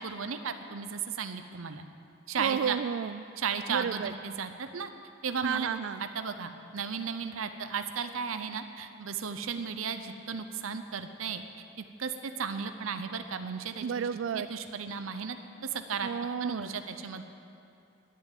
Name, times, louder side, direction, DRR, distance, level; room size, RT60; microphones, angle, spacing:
voice 1, 0.0-1.8 2.3-2.8 3.4-4.9 5.2-5.7 6.0-11.4 12.0-14.1 14.3-15.4 15.6-16.1 16.4-17.2, right 6 dB, 80° right, 9 dB, 0.7 m, -35 dB
voice 2, 2.4-3.3 3.7-4.1 5.4-6.0 13.8-14.5 16.0-16.7, right 7 dB, 65° right, 12 dB, 0.3 m, -32 dB
11.0 x 9.7 x 9.1 m, 2.7 s
head